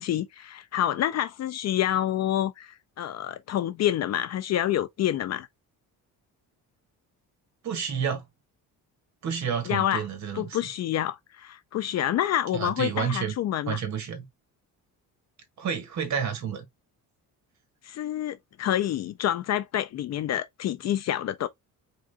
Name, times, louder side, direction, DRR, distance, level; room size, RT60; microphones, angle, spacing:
voice 1, 0.0-5.5 9.7-10.0 10.4-13.8 17.8-21.5, left 11 dB, 45° left, 0.4 m, -28 dB
voice 2, 7.6-8.2 9.2-10.7 12.5-13.3 13.6-14.3 15.6-16.6, right 7 dB, 50° right, 1.7 m, -30 dB
3.9 x 3.8 x 3.5 m
cardioid pair, 175°, 37 cm